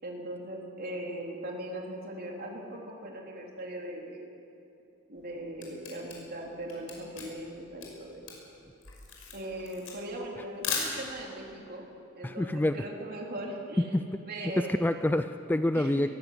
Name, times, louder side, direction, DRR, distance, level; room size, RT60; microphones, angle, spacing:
voice 1, 0.0-4.2 5.1-8.2 9.3-11.9 12.2-13.9 14.2-14.9 15.7-16.1, right 1 dB, 50° right, -1 dB, 3.3 m, -39 dB
Camera, 5.2-11.4, left 5 dB, 90° left, 5.5 m, -38 dB
voice 2, 12.2-12.9 13.8-14.0 14.6-16.1, left 1 dB, 10° left, 10 dB, 0.4 m, -27 dB
22.0 x 16.0 x 7.9 m, 2.8 s
head